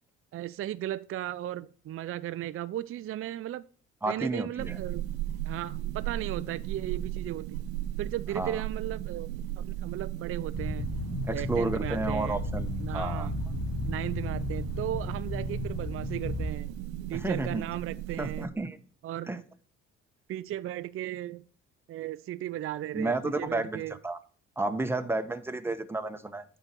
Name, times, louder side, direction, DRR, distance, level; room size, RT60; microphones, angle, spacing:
voice 1, 0.3-3.6 4.1-5.0 5.4-7.6 8.0-10.9 11.3-12.4 12.8-13.3 13.9-16.7 17.1-18.5 19.0-19.3 20.3-21.4 21.9-24.0, right 13 dB, 45° right, 0.4 m, -36 dB
voice 2, 4.0-4.8 8.3-8.6 11.3-13.3 17.1-17.6 18.2-18.8 19.3-19.4 22.9-24.2 24.6-26.4, right 2 dB, 5° right, 1.0 m, -31 dB
sound 1, 4.6-18.5, right 12 dB, 90° right, 0.7 m, -36 dB
sound 2, 10.5-16.5, left 3 dB, 50° left, 1.5 m, -35 dB
8.9 x 4.0 x 5.9 m
supercardioid pair, 60°, 31 cm